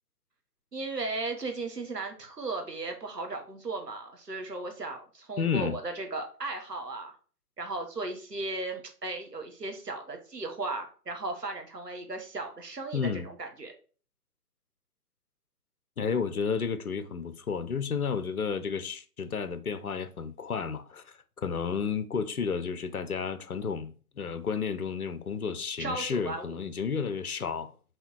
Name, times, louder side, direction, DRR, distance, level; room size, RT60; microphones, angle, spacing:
voice 1, 0.7-7.2 7.6-13.7 25.8-26.6, right 3 dB, 80° right, 1.8 m, -36 dB
voice 2, 5.4-5.8 12.9-13.3 16.0-27.7, left 6 dB, 65° left, 0.9 m, -32 dB
5.6 x 3.8 x 4.6 m
figure-of-eight pair, 145°, 47 cm